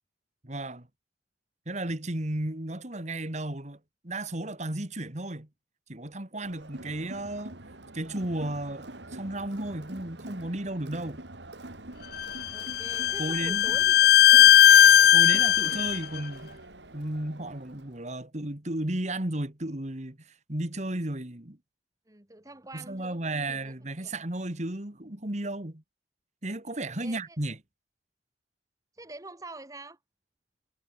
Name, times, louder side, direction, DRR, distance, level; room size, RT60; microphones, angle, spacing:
voice 1, 0.4-0.9 1.7-3.8 4.0-5.5 5.9-7.5 7.9-11.2 13.2-13.7 15.1-16.6 16.9-21.6 22.7-25.8 26.4-27.6, right 1 dB, 40° right, 2.4 m, -34 dB
Crowd, 6.4-18.0, right 2 dB, 85° right, 3.1 m, -45 dB
Bowed string instrument, 12.2-16.0, left 11 dB, 60° left, 0.4 m, -18 dB
voice 2, 12.5-14.6 22.1-24.1 26.8-27.4 29.0-30.0, right 2 dB, 20° right, 2.0 m, -46 dB
head